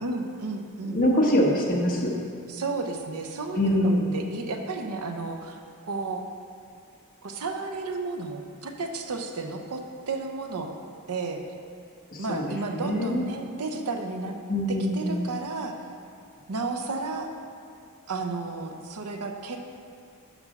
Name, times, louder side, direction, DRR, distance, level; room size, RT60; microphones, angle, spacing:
voice 1, 0.0-1.0 2.5-5.6 5.9-6.2 7.2-10.7 11.1-11.4 12.2-14.4 14.7-15.8 16.5-17.3 18.1-19.6, right 3 dB, 80° right, 4 dB, 0.7 m, -32 dB
voice 2, 0.8-2.1 3.5-4.1 12.1-12.4 12.7-13.2 14.5-15.3, equal, 40° left, -3 dB, 1.2 m, -24 dB
6.0 x 5.4 x 5.9 m, 2.4 s
head